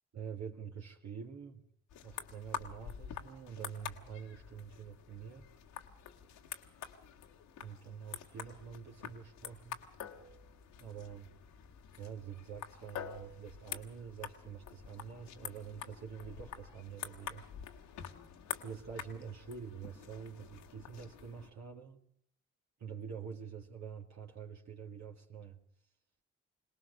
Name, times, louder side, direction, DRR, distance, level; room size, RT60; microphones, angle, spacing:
voice 1, 0.1-1.6 2.0-5.6 7.6-9.8 10.8-11.3 11.9-17.4 18.6-22.0 22.8-25.6, right 7 dB, 70° right, 2.4 m, -46 dB
sound 1, 1.9-21.5, left 9 dB, 85° left, 1.7 m, -47 dB
23.0 x 19.0 x 6.6 m
supercardioid pair, 45°, 29 cm